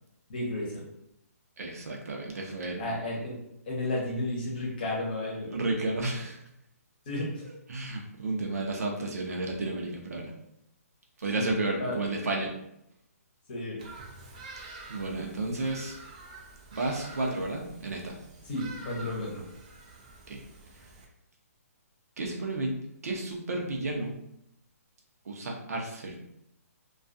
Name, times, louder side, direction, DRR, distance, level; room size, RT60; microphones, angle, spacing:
voice 1, 0.3-0.8 2.8-3.4 3.7-5.5 7.1-7.4 11.4-11.5 11.8-12.0 13.5-13.8 18.5-19.4, left 1 dB, 35° left, -4 dB, 0.8 m, -32 dB
voice 2, 1.6-2.8 5.5-6.4 7.4-10.3 11.2-12.5 14.9-16.0 16.7-18.2 20.3-20.4 22.2-24.1 25.2-26.2, right 2 dB, 70° right, 0 dB, 0.7 m, -32 dB
Bird vocalization bird call bird song, 13.8-21.1, right 3 dB, 30° right, 0.4 m, -48 dB
2.4 x 2.3 x 2.5 m, 0.80 s
hypercardioid pair, 170°, 9 cm